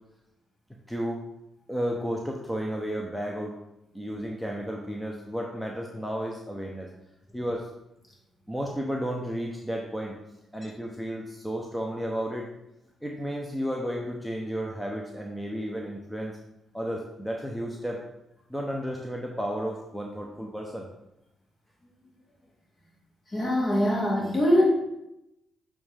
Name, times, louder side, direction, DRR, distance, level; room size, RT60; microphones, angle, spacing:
voice 1, 0.9-1.2 1.7-3.6 3.9-6.9 7.3-7.7 8.5-10.2 10.5-12.5 13.0-16.4 16.7-18.0 18.5-20.9, equal, 5° left, 0 dB, 0.9 m, -32 dB
voice 2, 23.3-24.7, equal, 40° left, -2 dB, 2.3 m, -23 dB
8.1 x 3.6 x 3.5 m, 0.87 s
hypercardioid pair, 50°, 0 cm